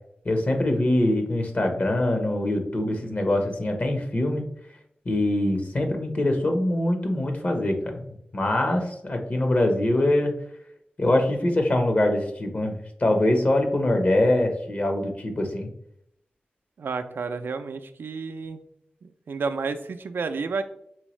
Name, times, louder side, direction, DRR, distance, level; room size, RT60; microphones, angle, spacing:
voice 1, 0.2-4.4 5.0-8.0 8.3-10.3 11.0-15.7, left 1 dB, 45° left, 4 dB, 1.0 m, -23 dB
voice 2, 16.8-18.6 19.0-20.6, right 4 dB, 85° right, 8 dB, 0.4 m, -31 dB
4.5 x 3.5 x 3.1 m, 0.73 s
cardioid pair, 60°, 4 cm